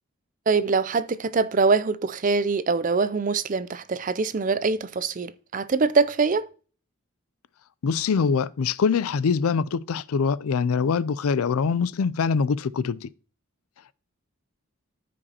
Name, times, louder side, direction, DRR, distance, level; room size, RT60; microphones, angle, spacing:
voice 1, 0.5-6.5, right 4 dB, 35° right, 0.4 m, -23 dB
voice 2, 7.8-13.1, left 5 dB, 80° left, 0.4 m, -24 dB
13.5 x 5.1 x 2.9 m
head